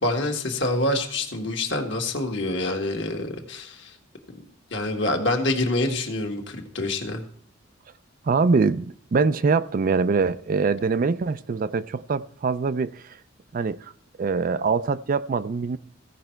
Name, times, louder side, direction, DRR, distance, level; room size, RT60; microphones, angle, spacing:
voice 1, 0.0-3.9 4.7-7.2, left 2 dB, 65° left, 1.5 m, -26 dB
voice 2, 8.3-13.1 13.5-13.8 14.2-15.8, right 4 dB, 45° right, 0.4 m, -23 dB
15.5 x 5.4 x 4.4 m
head